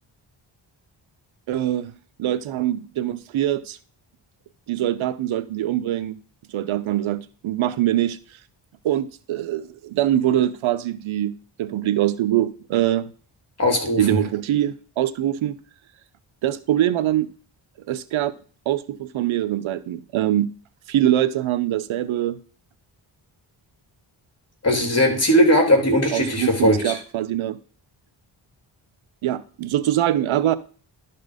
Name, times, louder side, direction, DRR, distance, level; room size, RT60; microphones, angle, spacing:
voice 1, 1.5-1.9 2.2-3.8 4.7-6.2 6.5-8.2 8.8-13.1 14.0-15.6 16.4-17.3 17.9-18.3 18.7-20.5 20.9-22.4 26.1-27.6 29.2-30.6, right 12 dB, 85° right, 14 dB, 0.8 m, -23 dB
voice 2, 13.6-14.2 24.6-26.9, equal, 30° left, 2 dB, 3.2 m, -19 dB
12.0 x 4.3 x 5.0 m, 0.41 s
cardioid pair, 80°, 47 cm